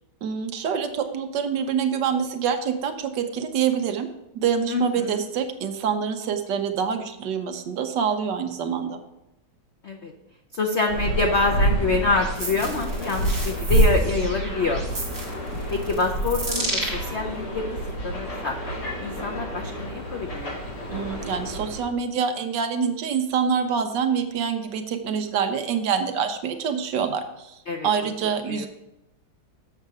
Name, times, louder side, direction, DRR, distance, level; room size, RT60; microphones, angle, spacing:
voice 1, 0.2-4.1 4.3-9.0 20.9-27.6 27.8-28.7, right 7 dB, 70° right, 7 dB, 1.3 m, -26 dB
voice 2, 4.7-5.2 9.8-10.1 10.5-14.8 15.7-18.5 19.0-20.6 27.7-28.1 28.5-28.7, left 3 dB, 80° left, 2 dB, 0.6 m, -26 dB
sound 1, 10.9-21.8, right 1 dB, 55° left, 3.0 m, -27 dB
sound 2, 12.0-17.0, right 2 dB, 30° right, 2.5 m, -32 dB
7.5 x 6.3 x 4.8 m, 0.92 s
omnidirectional pair, 2.1 m